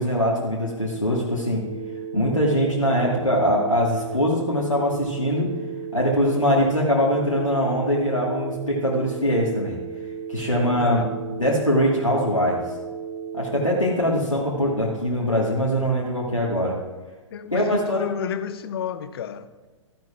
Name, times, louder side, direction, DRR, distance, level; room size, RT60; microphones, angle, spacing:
voice 1, 0.0-1.6 2.1-5.5 5.9-9.8 10.3-11.0 11.4-12.6 13.3-16.8 17.5-18.1, equal, 85° left, 1.7 m, -22 dB
Telephone, 1.6-13.8, right 7 dB, 45° right, 0.8 m, -35 dB
voice 2, 10.8-11.1 17.3-19.5, left 8 dB, 50° left, 0.7 m, -31 dB
14.5 x 10.5 x 2.5 m
figure-of-eight pair, 110°, 16 cm